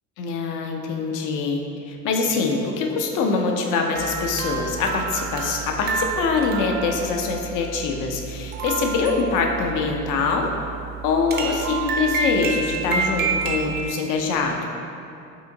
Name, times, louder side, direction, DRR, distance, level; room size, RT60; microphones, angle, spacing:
voice 1, 0.2-10.5 11.0-14.7, left 4 dB, 45° left, 2 dB, 0.5 m, -24 dB
sound 1, 3.9-13.9, right 5 dB, 25° right, 0.3 m, -29 dB
2.8 x 2.5 x 3.7 m, 2.6 s
hypercardioid pair, 65°, 47 cm